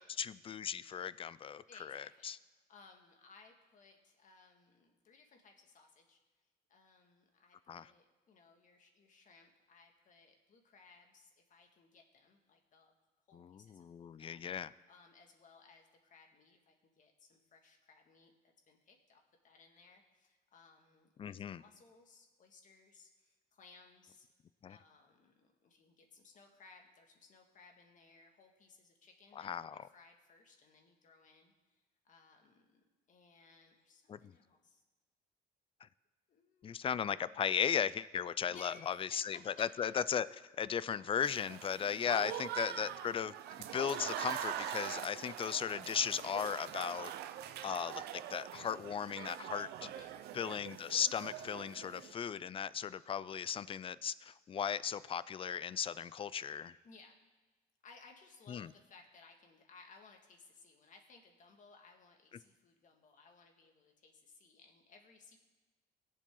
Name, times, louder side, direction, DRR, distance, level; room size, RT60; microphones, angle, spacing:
voice 1, 0.2-2.4 7.7-7.9 13.3-14.7 21.2-21.6 24.6-24.8 29.4-29.9 34.1-34.3 36.6-40.3 40.6-43.3 43.6-47.1 47.6-48.0 48.3-49.7 50.3-56.8 58.5-58.7, left 8 dB, 30° left, 17 dB, 0.4 m, -37 dB
voice 2, 1.7-6.2 6.7-12.9 13.3-14.4 14.9-24.3 24.7-31.5 32.0-34.8 36.3-36.8 38.5-39.7 42.2-42.5 49.8-50.2 56.8-57.2 57.8-65.4, left 4 dB, 50° left, 3 dB, 2.1 m, -61 dB
Applause / Crowd, 41.2-52.1, right 11 dB, 75° right, 0.6 m, -43 dB
21.5 x 7.5 x 3.9 m, 1.2 s
cardioid pair, 110°, 17 cm